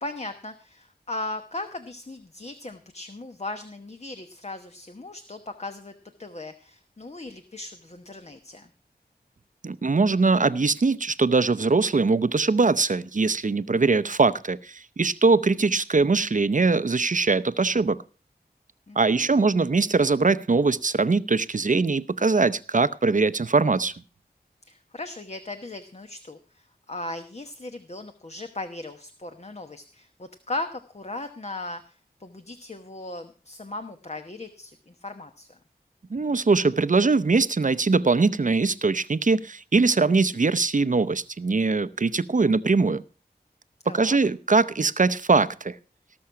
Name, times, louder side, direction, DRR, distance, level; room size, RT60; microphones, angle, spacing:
voice 1, 0.0-5.9 6.2-8.7 18.9-19.5 24.6-35.6 43.8-44.2, left 2 dB, 40° left, 7 dB, 1.1 m, -37 dB
voice 2, 9.6-18.0 19.0-23.9 36.1-43.0 43.9-45.8, right 4 dB, 50° right, 14 dB, 0.7 m, -22 dB
18.5 x 6.3 x 5.7 m, 0.38 s
wide cardioid pair, 60°, 17 cm